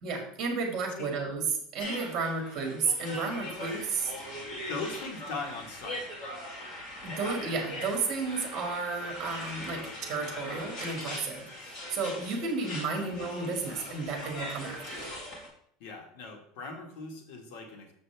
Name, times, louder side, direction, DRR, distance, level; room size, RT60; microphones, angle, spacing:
voice 1, 0.0-1.4 1.7-4.1 7.0-15.1, right 4 dB, 35° right, 2 dB, 2.0 m, -33 dB
sound 1, 1.8-15.5, left 1 dB, 30° left, 2.3 m, -41 dB
voice 2, 4.7-6.0 13.0-13.1 15.8-17.9, left 3 dB, 60° left, 2 dB, 1.6 m, -39 dB
7.0 x 6.6 x 3.4 m, 0.67 s
supercardioid pair, 165°, 0 cm